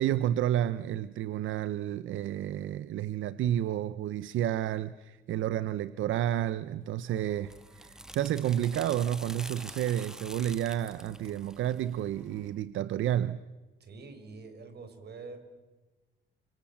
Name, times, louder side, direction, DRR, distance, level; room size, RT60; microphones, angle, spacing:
voice 1, 0.0-13.4, right 11 dB, 80° right, 0.8 m, -30 dB
sound 1, 7.1-12.5, right 1 dB, 5° right, 1.5 m, -47 dB
voice 2, 13.8-15.4, right 4 dB, 55° right, 5.9 m, -46 dB
30.0 x 26.5 x 7.4 m
cardioid pair, 90°, 20 cm